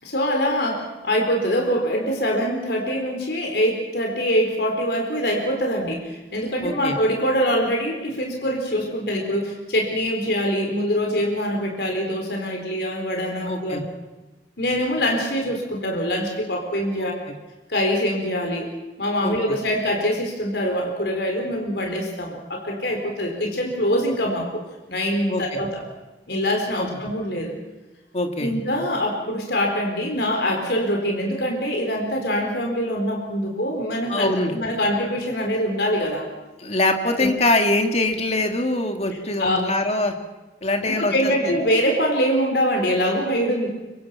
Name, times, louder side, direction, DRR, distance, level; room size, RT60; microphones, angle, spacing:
voice 1, 0.0-13.8 14.6-17.1 17.7-18.7 19.0-24.6 24.9-25.8 26.3-27.5 28.4-36.2 37.0-37.3 39.4-39.6 40.9-43.7, equal, 70° left, 1 dB, 4.3 m, -24 dB
voice 2, 6.6-7.0 13.4-13.8 17.0-17.1 19.2-19.6 25.3-25.6 26.8-26.9 28.1-28.5 34.1-34.6 36.6-40.2 40.6-41.6, left 2 dB, 40° left, 5 dB, 2.3 m, -23 dB
24.5 x 24.5 x 5.9 m, 1.1 s
head